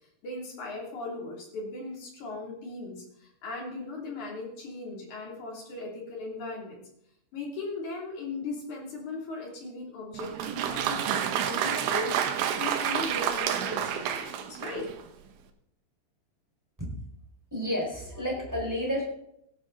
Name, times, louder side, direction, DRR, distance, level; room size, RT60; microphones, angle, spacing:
voice 1, 0.2-6.8 7.3-14.9, left 2 dB, 45° left, -1 dB, 3.9 m, -38 dB
Applause, 10.1-15.0, right 9 dB, 80° right, 3.5 m, -29 dB
voice 2, 17.5-19.0, equal, 5° right, -3 dB, 4.3 m, -30 dB
17.5 x 11.0 x 4.0 m, 0.75 s
omnidirectional pair, 5.4 m